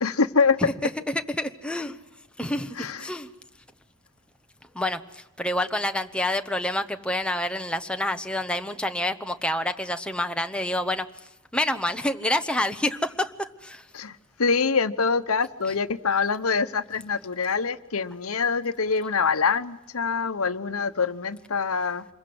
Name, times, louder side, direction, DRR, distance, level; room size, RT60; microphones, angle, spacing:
voice 1, 0.0-0.6 2.8-3.0 13.9-22.0, left 5 dB, 80° left, 1.0 m, -25 dB
voice 2, 0.6-2.0 2.4-3.3 4.7-11.1 11.5-13.9, left 1 dB, 5° left, 1.0 m, -28 dB
27.0 x 22.0 x 7.8 m
head